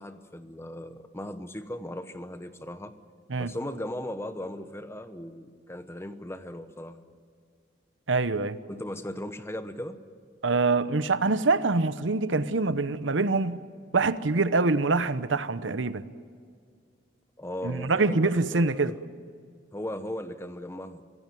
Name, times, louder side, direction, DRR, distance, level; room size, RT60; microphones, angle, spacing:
voice 1, 0.0-2.9 3.4-7.0 8.7-10.0 17.4-19.0 19.7-21.0, left 1 dB, 15° left, 1.1 m, -37 dB
voice 2, 8.1-8.6 10.4-13.6 13.9-16.0 17.6-18.9, right 3 dB, 80° right, 0.9 m, -25 dB
25.5 x 16.5 x 9.2 m
head